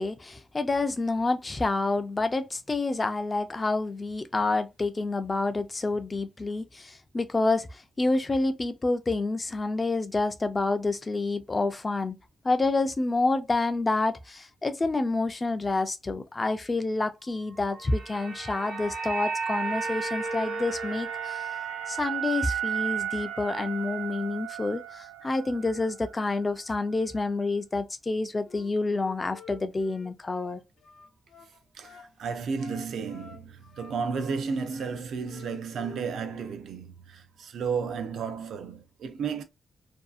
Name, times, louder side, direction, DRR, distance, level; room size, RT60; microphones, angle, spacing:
voice 1, 0.0-12.2 12.4-21.4 21.9-30.6, left 3 dB, 25° left, 0.3 m, -28 dB
sound 1, 17.6-25.9 26.2-26.4, right 6 dB, 70° right, 0.9 m, -33 dB
Wind instrument woodwind instrument, 28.4-32.1 32.5-35.0 35.3-36.6, left 3 dB, 75° left, 0.7 m, -48 dB
voice 2, 31.7-39.4, right 5 dB, 85° right, 0.5 m, -33 dB
2.6 x 2.3 x 2.4 m
wide cardioid pair, 150°, 0 cm